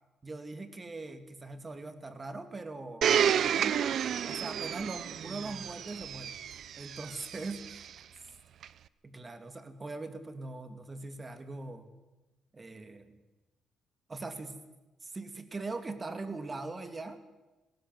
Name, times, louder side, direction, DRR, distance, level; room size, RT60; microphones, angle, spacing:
voice 1, 0.2-3.1 3.5-4.0 4.2-6.4 6.8-7.9 9.0-11.9 12.5-13.2 14.1-14.6 15.0-17.3, right 3 dB, 25° right, 9 dB, 2.6 m, -41 dB
Domestic sounds home sounds, 3.0-7.9 8.6-8.7, right 9 dB, 65° right, 0.7 m, -31 dB
19.5 x 17.5 x 8.1 m, 1.1 s
cardioid pair, 90°, 0 cm